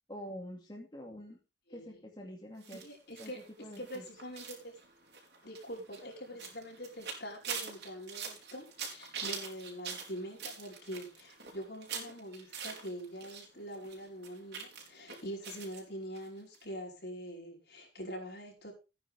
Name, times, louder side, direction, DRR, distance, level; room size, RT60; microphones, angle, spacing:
voice 1, 0.1-1.4 1.7-2.8 3.2-3.3 3.6-4.0, equal, 25° left, -1 dB, 2.5 m, -46 dB
sound 1, 2.6-13.5 13.7-15.8 16.1-16.3 16.5-16.6, right 6 dB, 65° right, 4.0 m, -44 dB
voice 2, 2.7-3.4 3.8-4.7 5.4-18.7, equal, 65° left, 0 dB, 5.2 m, -44 dB
15.0 x 9.8 x 3.7 m, 0.29 s
head